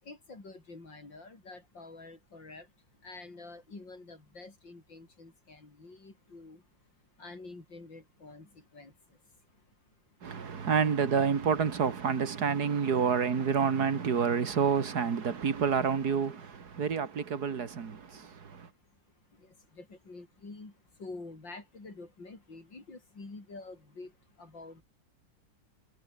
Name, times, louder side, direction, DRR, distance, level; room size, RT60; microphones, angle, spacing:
voice 1, 0.0-6.7 7.2-9.7 10.1-10.6 18.1-18.5 18.8-24.8, left 3 dB, 85° left, 6.2 m, -49 dB
voice 2, 10.2-18.7, right 6 dB, 60° right, 2.5 m, -28 dB
omnidirectional pair, 2.0 m